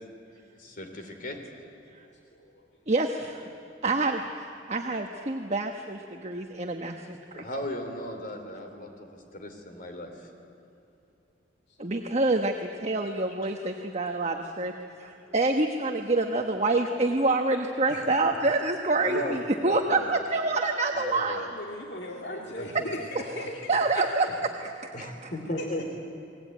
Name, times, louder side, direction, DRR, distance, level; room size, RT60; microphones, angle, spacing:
voice 1, 0.5-1.4 7.3-10.3 17.9-18.0 19.0-20.2 20.9-21.5 22.4-23.1 24.3-24.4 24.9-25.9, equal, 45° left, 5 dB, 3.5 m, -37 dB
voice 2, 2.0-2.6 11.7-12.0 14.4-14.5 14.8-15.4 21.5-24.1 25.2-25.3 25.6-25.8, left 1 dB, 60° left, 0 dB, 2.3 m, -39 dB
voice 3, 2.9-3.4 3.8-4.2 4.7-7.4 11.8-21.4 23.7-24.3 24.6-25.3, right 2 dB, 35° right, 3 dB, 1.1 m, -27 dB
29.5 x 20.5 x 9.4 m, 2.8 s
head